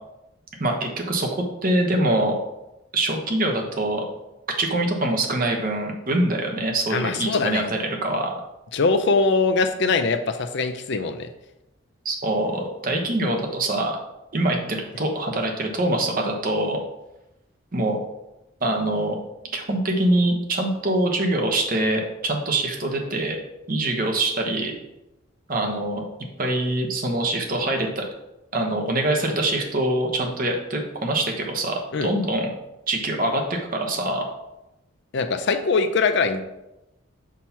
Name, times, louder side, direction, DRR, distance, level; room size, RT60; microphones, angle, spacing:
voice 1, 0.6-1.3 1.6-2.3 2.9-4.0 4.6-8.3 12.0-14.0 14.3-16.8 17.7-18.0 18.6-19.1 19.5-23.4 23.7-24.7 25.5-26.0 26.4-28.1 28.5-32.5 32.9-33.4 33.7-34.2, right 1 dB, 45° right, 2 dB, 0.9 m, -24 dB
voice 2, 6.9-7.7 8.7-11.3 31.9-32.1 35.1-36.4, left 4 dB, 55° left, 8 dB, 0.5 m, -22 dB
6.1 x 2.9 x 5.6 m, 0.93 s
head